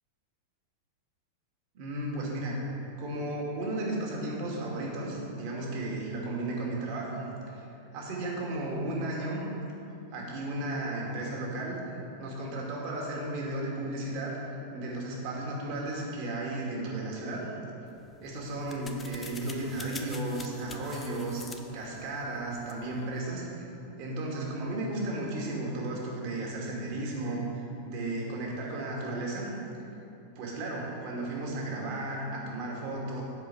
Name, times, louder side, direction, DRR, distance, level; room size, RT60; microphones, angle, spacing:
voice 1, 1.7-2.6 3.0-7.7 7.9-9.4 10.1-11.8 12.2-14.4 14.7-17.5 18.2-21.4 21.7-23.4 24.0-27.4 27.8-29.5 30.4-33.2, right 2 dB, 45° right, -2 dB, 2.3 m, -34 dB
sound 1, 17.9-23.2, left 4 dB, 15° left, 0.8 m, -47 dB
8.2 x 6.4 x 7.5 m, 2.9 s
figure-of-eight pair, 90°, 0 cm